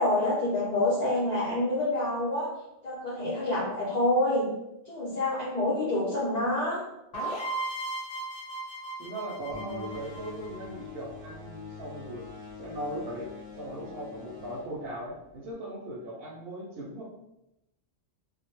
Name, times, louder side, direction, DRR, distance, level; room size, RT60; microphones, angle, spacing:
voice 1, 0.0-2.5 2.8-4.5 4.9-6.8, left 1 dB, 50° left, -8 dB, 0.6 m, -27 dB
sound 1, 7.1-10.9, right 2 dB, 70° left, 1.0 m, -36 dB
voice 2, 9.0-12.2 12.6-13.3 13.6-17.0, right 1 dB, 70° right, -4 dB, 0.7 m, -38 dB
sound 2, 9.5-15.5, left 6 dB, 30° right, 0.8 m, -44 dB
2.1 x 2.0 x 2.9 m, 0.87 s
omnidirectional pair, 1.1 m